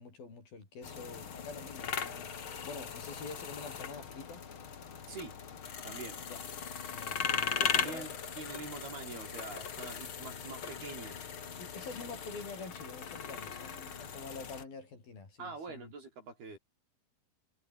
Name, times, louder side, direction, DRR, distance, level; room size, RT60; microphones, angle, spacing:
voice 1, 0.0-2.3 2.6-4.4 6.3-6.4 6.9-8.1 11.6-15.9, left 4 dB, 70° left, 9.1 m, -47 dB
sound 1, 0.8-14.6, left 7 dB, 40° left, 2.3 m, -39 dB
voice 2, 5.8-6.2 7.6-11.3 15.4-16.6, right 4 dB, 85° right, 10.0 m, -45 dB
omnidirectional pair, 4.3 m